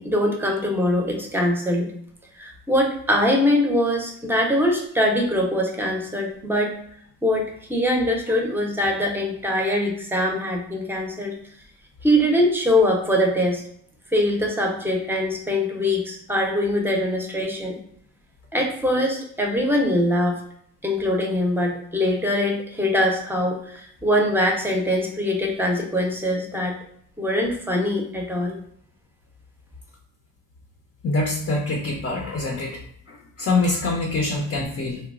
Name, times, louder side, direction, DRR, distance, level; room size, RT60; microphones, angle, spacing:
voice 1, 0.0-1.9 2.4-6.7 7.2-11.3 12.0-13.6 14.1-17.8 18.5-20.4 20.8-26.8 27.2-28.6, left 1 dB, 5° right, 1 dB, 0.7 m, -22 dB
voice 2, 31.0-32.8 33.1-35.0, left 2 dB, 40° left, 0 dB, 0.6 m, -25 dB
3.0 x 2.2 x 2.4 m, 0.66 s
cardioid pair, 70°, 35 cm